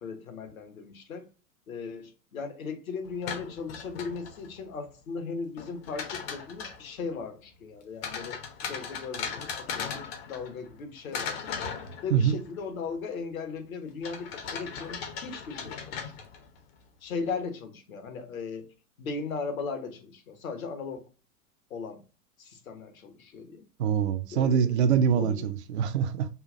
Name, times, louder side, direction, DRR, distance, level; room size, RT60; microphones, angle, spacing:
voice 1, 0.0-1.3 1.7-11.6 12.0-16.1 17.0-18.7 19.0-21.0 21.7-22.0 22.4-23.6 24.3-24.7 25.1-25.5, left 5 dB, 60° left, 1.1 m, -37 dB
sound 1, 3.0-4.6 5.6-6.9 8.0-10.8 11.1-12.5 14.0-16.6, left 6 dB, 40° left, 0.8 m, -38 dB
voice 2, 23.8-26.3, right 8 dB, 45° right, 0.5 m, -24 dB
5.5 x 2.4 x 2.5 m
figure-of-eight pair, 95°, 46 cm